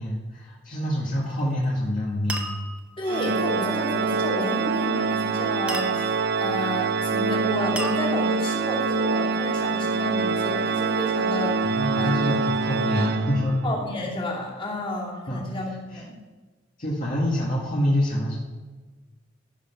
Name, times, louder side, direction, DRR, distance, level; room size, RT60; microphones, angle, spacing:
voice 1, 0.0-2.6 11.6-13.6 15.3-15.4 15.9-16.0 16.8-18.4, equal, 45° left, -5 dB, 1.9 m, -26 dB
sound 1, 1.2-1.7 2.3-3.0 5.7-6.4 7.8-8.6, right 1 dB, 5° right, 1.1 m, -35 dB
voice 2, 3.0-12.2 13.6-16.2, left 1 dB, 30° left, -3 dB, 2.7 m, -31 dB
Organ, 3.1-13.8, right 4 dB, 60° right, 0.5 m, -25 dB
15.0 x 5.9 x 5.9 m, 1.3 s
head